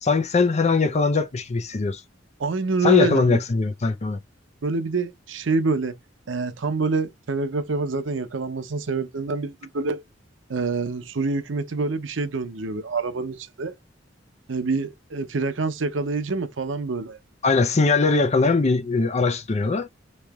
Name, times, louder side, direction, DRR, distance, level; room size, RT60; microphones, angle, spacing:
voice 1, 0.0-2.0 2.8-4.2 17.4-19.9, left 4 dB, 35° left, 0.5 m, -21 dB
voice 2, 2.4-3.4 4.6-5.9 6.3-10.0 10.5-13.7 14.5-17.2, right 3 dB, 85° right, 0.7 m, -26 dB
3.2 x 2.8 x 3.4 m
head